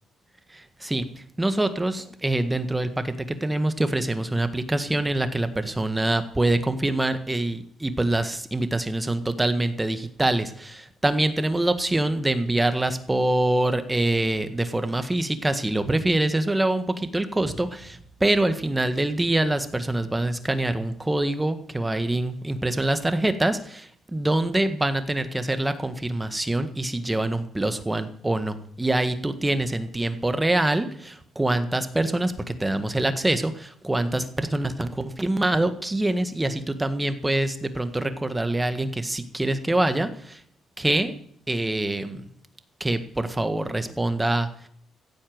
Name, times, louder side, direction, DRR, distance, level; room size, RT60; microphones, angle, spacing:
voice 1, 0.5-40.4 40.8-41.1 41.5-42.3 42.8-44.7, right 1 dB, 10° right, 10 dB, 1.7 m, -25 dB
15.5 x 8.6 x 8.0 m, 0.65 s
cardioid pair, 90°, 0 cm